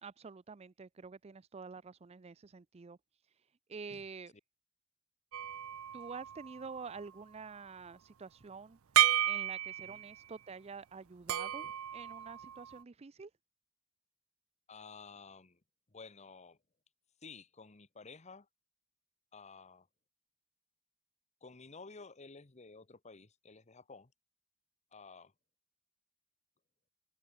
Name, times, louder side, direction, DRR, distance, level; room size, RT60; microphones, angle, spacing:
voice 1, 0.0-3.0 3.7-4.3 5.9-8.8 9.2-13.3, right 5 dB, 30° right, 0.4 m, -48 dB
sound 1, 5.3-7.0 8.9-10.2 11.3-12.8, right 12 dB, 85° right, 0.6 m, -33 dB
voice 2, 14.7-15.6 15.9-16.6 17.2-18.5 19.3-19.9 21.4-24.1 24.9-25.3, left 4 dB, 35° left, 1.1 m, -53 dB
open air
head